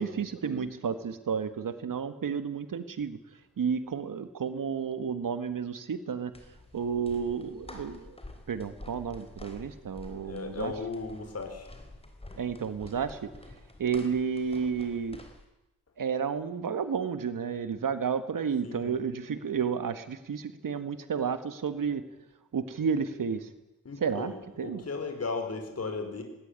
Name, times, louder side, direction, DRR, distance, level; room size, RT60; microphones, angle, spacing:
voice 1, 0.0-3.2 3.6-6.3 6.7-8.2 8.5-10.7 12.4-13.3 13.8-15.2 16.0-22.0 22.5-23.5 24.0-24.8, right 6 dB, 75° right, 11 dB, 1.8 m, -31 dB
sound 1, 6.3-15.5, left 2 dB, 15° left, 3.9 m, -49 dB
voice 2, 10.2-11.7 18.6-18.9 23.8-26.2, left 4 dB, 45° left, 5 dB, 4.6 m, -36 dB
20.0 x 18.0 x 9.8 m, 0.96 s
wide cardioid pair, 115°, 33 cm